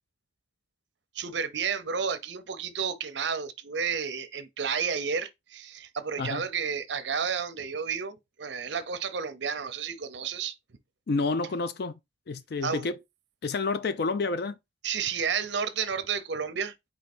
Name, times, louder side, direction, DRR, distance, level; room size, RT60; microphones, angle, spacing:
voice 1, 1.1-10.6 12.6-12.9 14.8-16.7, right 6 dB, 65° right, 0.6 m, -31 dB
voice 2, 11.1-12.0 12.3-13.0 13.4-14.6, left 3 dB, 55° left, 0.4 m, -29 dB
4.5 x 2.8 x 4.2 m
head